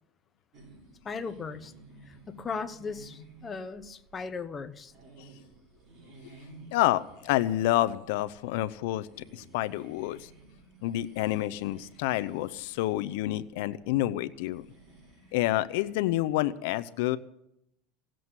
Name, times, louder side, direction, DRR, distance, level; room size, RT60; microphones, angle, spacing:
sound 1, 0.5-16.3, right 2 dB, 40° right, 6.8 m, -55 dB
voice 1, 1.0-1.7 2.1-4.9, left 5 dB, 20° left, 8 dB, 1.0 m, -37 dB
voice 2, 6.7-9.1 9.3-10.3 10.8-14.7 15.3-17.2, left 15 dB, 75° left, 14 dB, 0.7 m, -28 dB
17.5 x 7.7 x 9.7 m, 0.80 s
supercardioid pair, 135°, 0 cm